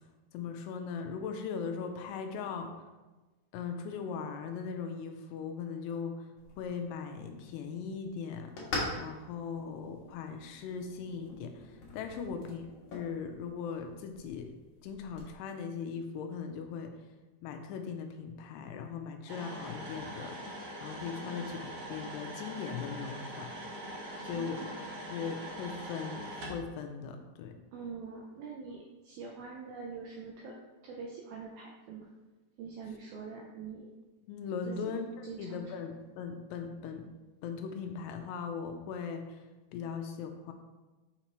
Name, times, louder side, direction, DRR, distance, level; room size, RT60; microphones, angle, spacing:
voice 1, 0.3-2.7 3.5-6.3 6.6-8.5 8.9-12.6 12.9-14.5 14.8-16.9 17.4-23.5 24.2-26.2 26.5-27.6 34.2-37.1 37.4-39.4 39.7-40.5, left 6 dB, 80° left, 5 dB, 2.6 m, -39 dB
sound 1, 6.4-15.3, left 2 dB, 60° left, 2.2 m, -44 dB
sound 2, 19.3-26.6, equal, 55° right, 1.8 m, -42 dB
voice 2, 24.3-24.7 27.7-30.6 30.8-32.1 32.6-33.9 34.6-34.9 35.2-35.6, right 5 dB, 80° right, -1 dB, 2.1 m, -44 dB
6.5 x 5.6 x 3.0 m, 1.2 s
omnidirectional pair, 4.9 m